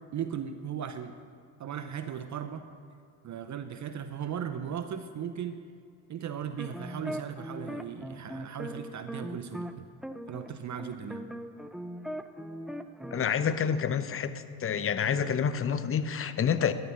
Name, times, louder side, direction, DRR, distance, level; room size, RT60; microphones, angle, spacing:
voice 1, 0.1-1.2 1.6-2.7 3.2-5.6 6.1-9.9 10.3-11.3, right 8 dB, 40° right, 9 dB, 0.8 m, -37 dB
sound 1, 6.6-9.7 10.0-13.3, equal, ahead, 0.5 m, -39 dB
voice 2, 13.1-14.3 14.6-16.7, left 7 dB, 30° left, 11 dB, 0.8 m, -28 dB
11.5 x 7.6 x 7.2 m, 2.3 s
hypercardioid pair, 65°, 47 cm